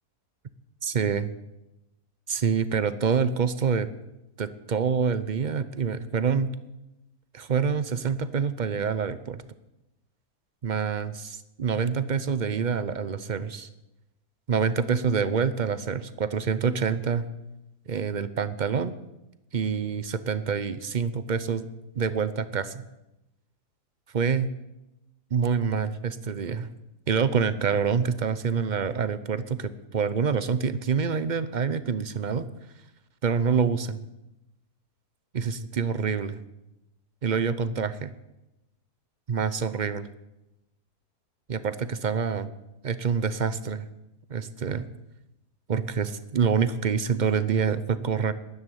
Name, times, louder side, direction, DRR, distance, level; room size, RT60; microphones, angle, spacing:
voice 1, 0.8-1.3 2.3-3.9 4.4-6.5 7.3-9.4 10.6-13.7 14.5-17.2 17.9-18.9 19.5-21.7 22.0-22.8 24.1-24.5 25.3-26.7 27.1-32.5 33.2-34.0 35.3-36.4 37.2-38.1 39.3-40.1 41.5-42.5 42.8-43.9 44.3-44.8 45.7-48.3, right 6 dB, 50° right, 14 dB, 0.5 m, -26 dB
13.0 x 11.0 x 9.0 m, 0.94 s
omnidirectional pair, 1.7 m